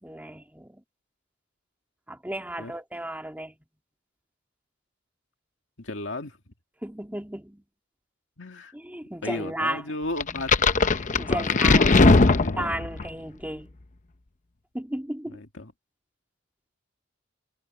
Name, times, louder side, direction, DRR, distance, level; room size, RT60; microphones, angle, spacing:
voice 1, 0.0-0.8 2.1-3.6 6.8-7.6 8.7-9.9 11.0-12.2 12.6-13.8 14.7-15.4, right 1 dB, 10° right, 2.6 m, -34 dB
voice 2, 5.8-6.4 8.4-8.7 9.2-10.6 11.3-12.9 15.3-15.7, left 2 dB, 70° left, 2.3 m, -35 dB
sound 1, 10.2-13.1, left 3 dB, 40° left, 0.8 m, -19 dB
head